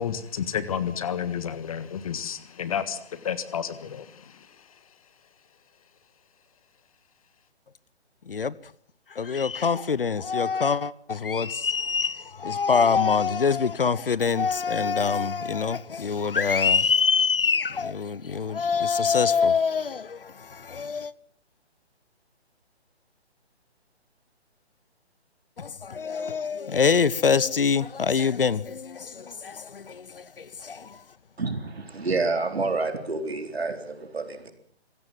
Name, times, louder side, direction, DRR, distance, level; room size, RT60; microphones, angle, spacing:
voice 1, 0.0-4.5, left 8 dB, 30° left, 1.5 m, -31 dB
voice 2, 9.1-21.1 25.6-31.0, left 5 dB, 55° left, 0.9 m, -25 dB
voice 3, 31.4-34.5, right 3 dB, 65° right, 4.2 m, -28 dB
25.5 x 17.0 x 7.8 m
figure-of-eight pair, 140°, 33 cm